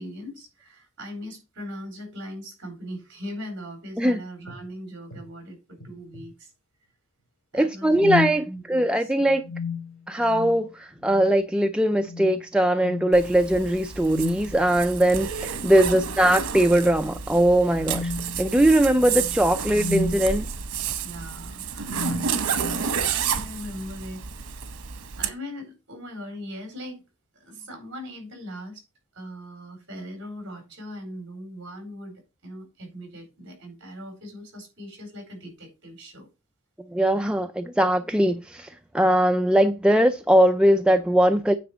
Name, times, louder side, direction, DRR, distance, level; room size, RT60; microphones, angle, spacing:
voice 1, 0.0-6.5 7.5-8.1 8.4-9.4 15.7-16.0 21.0-24.2 24.5-24.7 25.2-27.0 27.3-28.8 29.1-36.3, equal, 55° right, 4.4 m, -40 dB
sound 1, 4.5-4.6 5.1-5.3 5.8-6.3 7.9-8.5 9.4-10.7 11.0-11.3 12.0-12.4 12.8-13.1 14.0-14.6 15.8-16.2 16.6-16.8 17.7-20.3 21.2-21.4 21.9-22.9, left 3 dB, 60° left, 2.6 m, -33 dB
voice 2, 7.5-9.5 10.1-18.1 18.4-20.5 36.9-41.5, right 1 dB, 5° right, 0.3 m, -20 dB
Zipper (clothing), 13.1-25.3, right 7 dB, 90° right, 1.0 m, -31 dB
9.1 x 4.2 x 6.0 m
head